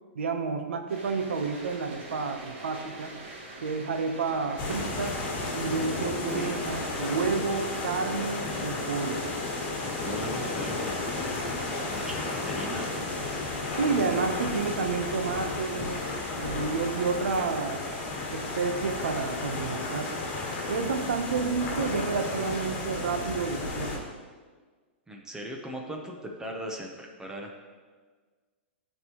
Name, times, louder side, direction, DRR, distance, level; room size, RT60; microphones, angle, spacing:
voice 1, 0.1-3.1 3.6-5.2 5.5-9.3 13.7-16.0 16.4-17.8 18.3-20.1 20.7-23.9, right 4 dB, 90° right, 6 dB, 0.8 m, -30 dB
sound 1, 0.9-18.8, right 2 dB, 60° right, 1.8 m, -45 dB
sound 2, 4.6-24.0, left 3 dB, 35° left, 1.8 m, -33 dB
voice 2, 10.0-11.4 11.8-13.1 25.1-27.5, equal, 10° right, 1 dB, 0.7 m, -39 dB
12.0 x 4.6 x 3.0 m, 1.5 s
hypercardioid pair, 140°, 7 cm